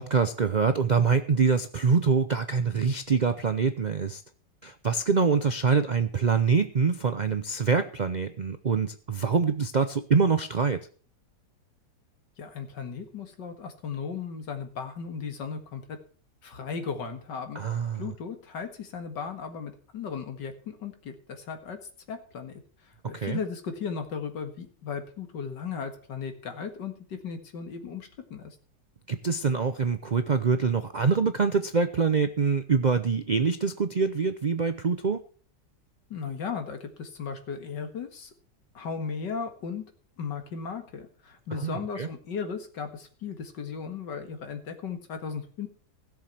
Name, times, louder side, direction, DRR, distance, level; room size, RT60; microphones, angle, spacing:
voice 1, 0.0-4.2 4.6-10.8 17.5-18.1 23.1-23.4 29.1-35.2 41.6-42.1, right 5 dB, 90° right, 10 dB, 0.4 m, -25 dB
voice 2, 12.4-15.8 16.4-17.6 18.0-21.8 22.1-22.5 23.1-28.5 36.1-38.3 38.7-39.8 40.2-45.7, left 6 dB, 85° left, 6 dB, 2.4 m, -36 dB
16.5 x 7.1 x 5.9 m, 0.43 s
omnidirectional pair, 1.8 m